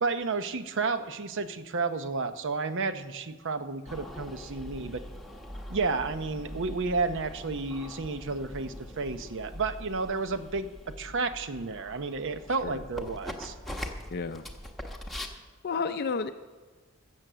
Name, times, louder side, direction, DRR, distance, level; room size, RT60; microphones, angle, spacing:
voice 1, 0.0-5.0 5.7-10.7 11.0-13.5, right 4 dB, 60° right, 11 dB, 0.7 m, -31 dB
sound 1, 3.9-15.3, left 1 dB, ahead, 1.1 m, -42 dB
voice 2, 14.1-14.4 15.6-16.3, left 5 dB, 45° left, 7 dB, 0.5 m, -31 dB
15.5 x 7.6 x 6.8 m, 1.3 s
head